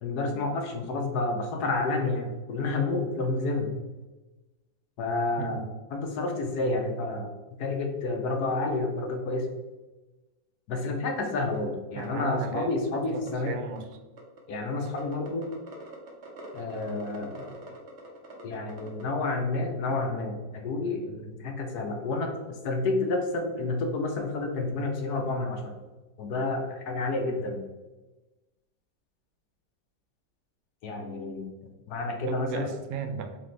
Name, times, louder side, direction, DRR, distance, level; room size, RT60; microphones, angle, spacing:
voice 1, 0.0-3.7 5.0-5.6 5.9-7.3 7.6-9.5 10.7-13.5 14.5-15.5 16.5-17.5 18.4-22.3 22.6-25.6 26.2-27.6 30.8-31.5 31.9-32.7, left 3 dB, 65° left, 2 dB, 1.1 m, -29 dB
sound 1, 11.5-11.6 12.0-12.1 12.4-12.5 12.7-13.3 13.8-14.4 14.9-19.0, right 2 dB, 50° right, 1.0 m, -44 dB
voice 2, 12.0-13.9 32.3-33.4, right 5 dB, 85° right, 7 dB, 1.3 m, -35 dB
4.1 x 3.6 x 3.2 m, 1.1 s
omnidirectional pair, 2.0 m